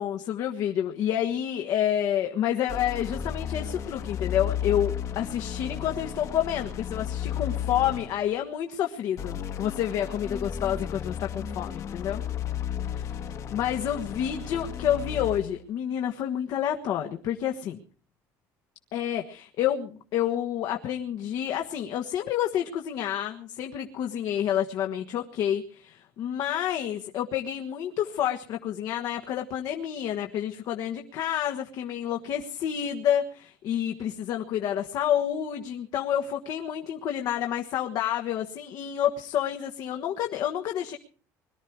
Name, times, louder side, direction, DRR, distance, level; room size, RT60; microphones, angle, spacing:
voice 1, 0.0-12.2 12.9-13.1 13.5-17.8 18.9-41.0, left 10 dB, 65° left, 3 dB, 1.4 m, -29 dB
sound 1, 2.7-8.3 9.2-15.6, left 9 dB, 45° left, 1.4 m, -34 dB
22.0 x 12.5 x 4.7 m, 0.43 s
cardioid pair, 130°, 7 cm